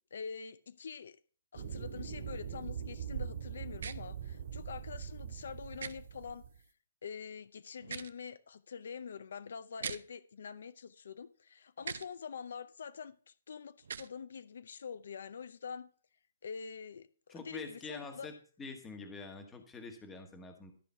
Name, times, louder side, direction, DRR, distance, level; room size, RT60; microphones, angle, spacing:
voice 1, 0.1-1.2 1.5-6.4 7.0-15.9 16.4-18.3, left 6 dB, 60° left, 0.6 m, -45 dB
sound 1, 1.5-6.6, right 8 dB, 45° right, 2.3 m, -42 dB
sound 2, 3.8-4.0 5.8-5.9 7.8-8.1 9.8-10.0 11.8-12.1 13.8-14.1, right 6 dB, 65° right, 0.7 m, -40 dB
voice 2, 17.3-20.7, left 4 dB, 10° left, 1.2 m, -46 dB
13.0 x 4.9 x 5.6 m
hypercardioid pair, 175°, 0 cm